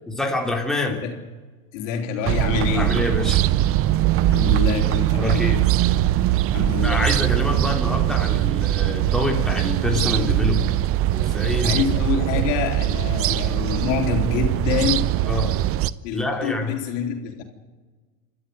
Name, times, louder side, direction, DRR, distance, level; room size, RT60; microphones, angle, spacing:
voice 1, 0.1-1.0 2.7-3.5 5.2-5.7 6.8-10.8 11.1-11.8 15.3-15.7 16.1-16.8, left 2 dB, ahead, 0 dB, 3.5 m, -26 dB
voice 2, 1.7-2.9 4.3-5.5 6.5-7.1 11.6-15.2 16.0-17.4, left 7 dB, 65° left, 4 dB, 4.1 m, -26 dB
sound 1, 2.3-15.9, right 14 dB, 35° right, 0.6 m, -21 dB
29.5 x 13.0 x 9.5 m, 1.4 s
supercardioid pair, 125°, 41 cm